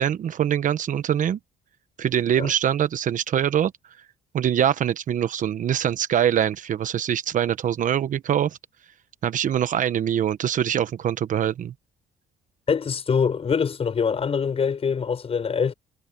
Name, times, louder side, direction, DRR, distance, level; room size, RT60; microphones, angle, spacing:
voice 1, 0.0-1.4 2.0-3.7 4.3-8.6 9.2-11.7, right 10 dB, 50° right, 1.0 m, -23 dB
voice 2, 12.7-15.7, left 6 dB, 35° left, 6.5 m, -24 dB
cardioid pair, 110°, 17 cm